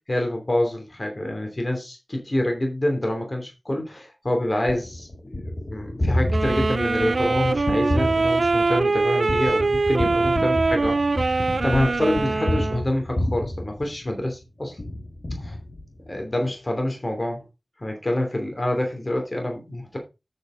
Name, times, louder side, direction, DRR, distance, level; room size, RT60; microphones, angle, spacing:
voice 1, 0.1-5.3 5.6-14.8 15.4-15.6 16.1-17.4 17.8-20.0, left 1 dB, 35° left, 3 dB, 2.8 m, -27 dB
Gunshot gunfire, 4.7-14.4 14.8-16.2, left 1 dB, 50° left, 1.9 m, -29 dB
sound 1, 6.3-12.9, right 3 dB, 70° right, 0.4 m, -23 dB
8.1 x 6.8 x 3.7 m, 0.25 s
cardioid pair, 40°, 0 cm